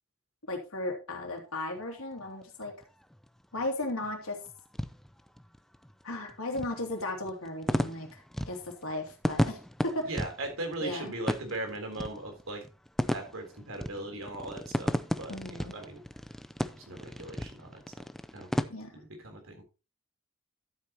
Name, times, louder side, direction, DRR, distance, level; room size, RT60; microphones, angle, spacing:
voice 1, 0.5-2.7 3.5-4.4 6.0-10.0 10.8-11.1 15.3-15.7 18.7-19.0, left 2 dB, 85° left, 3 dB, 2.8 m, -36 dB
sound 1, 1.4-18.6, equal, ahead, 0.5 m, -35 dB
voice 2, 10.0-12.6 13.1-16.0 16.6-18.1 18.3-18.5 18.9-19.6, right 2 dB, 70° right, 4 dB, 3.7 m, -39 dB
12.5 x 8.5 x 3.0 m, 0.30 s
head